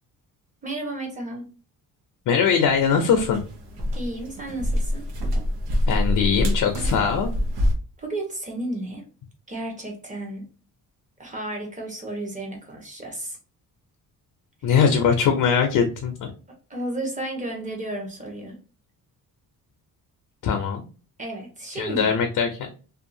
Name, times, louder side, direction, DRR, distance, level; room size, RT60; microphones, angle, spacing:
voice 1, 0.6-1.4 3.9-5.1 8.0-9.0 9.5-10.4 11.2-13.4 16.7-18.6 21.2-22.1, right 1 dB, 20° right, 1 dB, 0.9 m, -32 dB
voice 2, 2.3-3.4 5.9-7.3 14.6-16.3 20.4-20.8 21.7-22.7, left 6 dB, 60° left, 5 dB, 0.5 m, -21 dB
sound 1, 2.7-7.8, left 1 dB, 90° right, 0.8 m, -26 dB
2.6 x 2.3 x 2.6 m, 0.37 s
cardioid pair, 130°, 37 cm